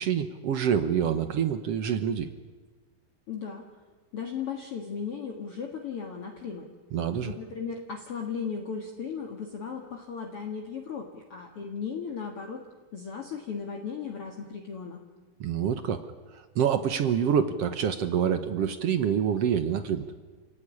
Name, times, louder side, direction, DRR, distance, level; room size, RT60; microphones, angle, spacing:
voice 1, 0.0-2.3 6.9-7.3 15.4-16.0 16.5-20.1, right 8 dB, 70° right, 10 dB, 1.5 m, -26 dB
voice 2, 3.3-3.7 4.1-6.7 7.2-12.6 12.9-15.0, left 6 dB, 45° left, 2 dB, 2.4 m, -36 dB
29.0 x 17.5 x 9.8 m, 1.4 s
omnidirectional pair, 4.3 m